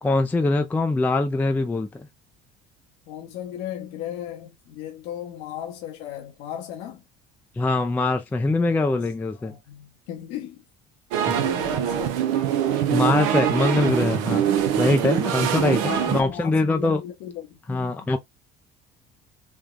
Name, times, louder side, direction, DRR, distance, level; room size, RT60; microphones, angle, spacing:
voice 1, 0.0-2.1 7.6-9.5 11.3-11.4 12.9-17.0 17.7-18.2, left 2 dB, 10° left, 0.3 m, -23 dB
voice 2, 3.1-7.0 9.3-10.6 11.3-12.2 15.8-18.1, left 10 dB, 75° left, 0.8 m, -36 dB
sound 1, 11.1-16.2, right 10 dB, 85° right, 0.6 m, -23 dB
3.3 x 2.2 x 2.3 m
supercardioid pair, 100°, 19 cm